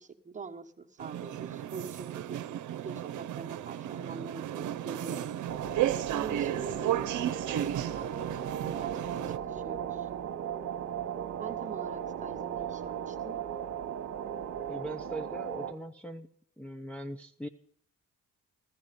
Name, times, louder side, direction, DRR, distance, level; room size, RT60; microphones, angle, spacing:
voice 1, 0.0-5.4 6.1-7.1 7.5-10.1 11.4-13.4, right 5 dB, 25° right, 3 dB, 1.3 m, -44 dB
sound 1, 1.0-9.4, right 12 dB, 75° right, 0.8 m, -34 dB
sound 2, 5.5-15.7, right 8 dB, 60° right, 1.3 m, -37 dB
voice 2, 14.7-16.3 16.6-17.5, right 1 dB, 5° left, 2 dB, 0.7 m, -40 dB
15.0 x 13.5 x 5.3 m, 0.63 s
cardioid pair, 90°, 30 cm